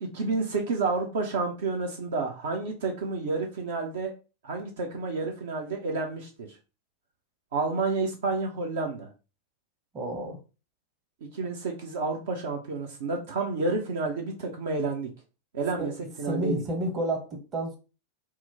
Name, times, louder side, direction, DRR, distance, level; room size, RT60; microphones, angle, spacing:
voice 1, 0.0-4.1 4.4-6.5 7.5-9.1 11.3-15.1 15.5-15.9 16.2-16.6, right 3 dB, 60° right, 1 dB, 0.6 m, -30 dB
voice 2, 9.9-10.4 15.8-15.9 16.2-17.8, right 1 dB, 25° right, 3 dB, 0.8 m, -30 dB
3.0 x 2.0 x 3.4 m, 0.32 s
figure-of-eight pair, 90°, 0 cm